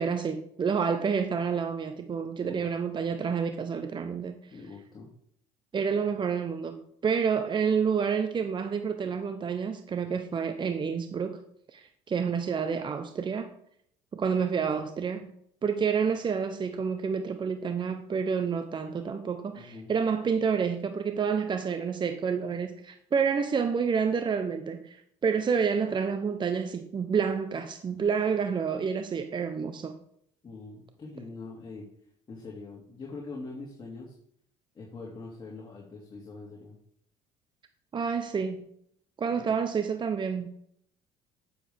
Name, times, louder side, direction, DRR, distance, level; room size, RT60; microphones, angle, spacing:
voice 1, 0.0-4.5 5.7-11.4 11.7-13.5 14.1-15.3 15.6-30.0 37.9-38.7 39.2-40.5, right 6 dB, 35° right, 0.9 m, -29 dB
voice 2, 4.5-5.1 19.5-19.9 30.4-31.8 32.3-34.1 34.7-36.8 39.3-39.5, left 3 dB, 30° left, 2.4 m, -43 dB
8.4 x 7.2 x 3.5 m
hypercardioid pair, 70°, 14 cm